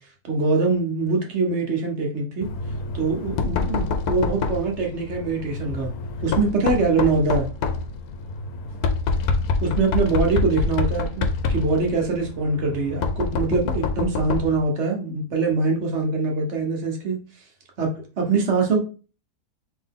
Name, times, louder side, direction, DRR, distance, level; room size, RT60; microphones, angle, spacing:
voice 1, 0.2-2.5 2.9-5.9 6.2-7.5 9.6-17.2 17.8-18.8, right 3 dB, 50° right, 2 dB, 1.1 m, -23 dB
Knock, 2.4-14.6, left 4 dB, 75° left, 1.0 m, -27 dB
3.8 x 3.0 x 3.6 m, 0.35 s
omnidirectional pair, 1.7 m